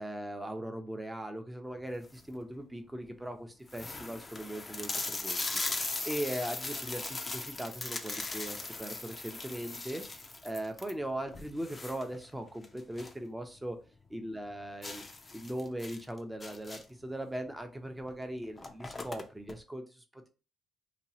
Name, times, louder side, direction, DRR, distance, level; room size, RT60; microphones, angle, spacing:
voice 1, 0.0-5.5 6.0-10.0 10.4-13.8 14.1-15.0 15.3-20.3, right 1 dB, 10° right, 6 dB, 0.6 m, -39 dB
sound 1, 1.9-2.3 3.0-3.1 3.3-3.4 3.7-13.3 13.6-13.7 14.1-14.2 14.8-17.1 18.0-18.1 18.4-19.6, left 3 dB, 30° left, 0.5 m, -39 dB
sound 2, 5.3-10.1, right 3 dB, 75° right, 0.9 m, -57 dB
2.9 x 2.3 x 2.8 m, 0.32 s
cardioid pair, 90°, 0 cm